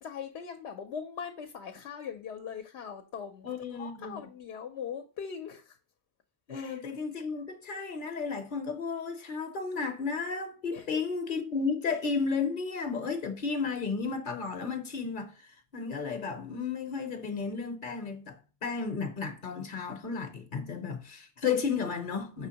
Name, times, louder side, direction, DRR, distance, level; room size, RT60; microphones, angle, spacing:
voice 1, 0.0-3.5 3.8-5.8 6.5-6.8 10.7-10.9, left 7 dB, 80° left, 0.9 m, -40 dB
voice 2, 3.4-4.2 6.5-18.4 18.6-22.5, left 5 dB, 55° left, 0.8 m, -33 dB
5.5 x 3.4 x 2.8 m
omnidirectional pair, 1.1 m